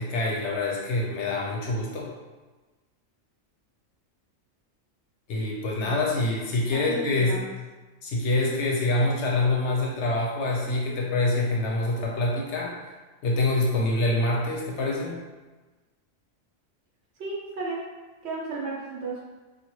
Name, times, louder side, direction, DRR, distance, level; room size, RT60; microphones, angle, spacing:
voice 1, 0.0-2.1 5.3-7.4 8.0-12.7 13.2-15.2, left 2 dB, 70° left, -2 dB, 0.8 m, -25 dB
voice 2, 6.7-7.5 17.2-17.8 18.2-19.2, right 3 dB, 65° right, -4 dB, 0.9 m, -34 dB
2.7 x 2.3 x 3.0 m, 1.2 s
omnidirectional pair, 1.3 m